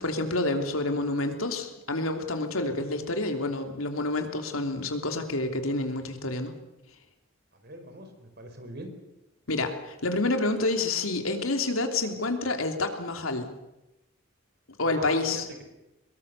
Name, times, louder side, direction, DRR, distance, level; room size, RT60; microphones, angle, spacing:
voice 1, 0.0-6.5 9.5-13.5 14.8-15.5, left 2 dB, 85° left, 5 dB, 3.1 m, -28 dB
voice 2, 7.6-8.9 14.8-15.6, right 1 dB, 50° right, 6 dB, 4.5 m, -42 dB
23.5 x 21.5 x 6.9 m, 0.95 s
head